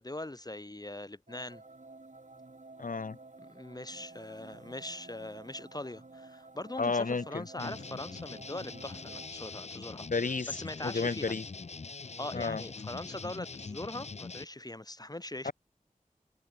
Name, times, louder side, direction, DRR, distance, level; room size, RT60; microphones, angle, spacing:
voice 1, 0.0-1.6 3.4-10.1 10.5-11.3 12.2-15.5, left 1 dB, 25° left, 1.2 m, -41 dB
sound 1, 1.3-9.3, right 3 dB, 60° right, 4.0 m, -52 dB
voice 2, 2.8-3.2 6.8-7.7 10.1-10.5 10.8-11.4 12.3-12.6 15.4-15.5, left 4 dB, 70° left, 1.0 m, -32 dB
sound 2, 7.6-14.4, left 4 dB, 50° left, 0.6 m, -43 dB
wide cardioid pair, 60°, 14 cm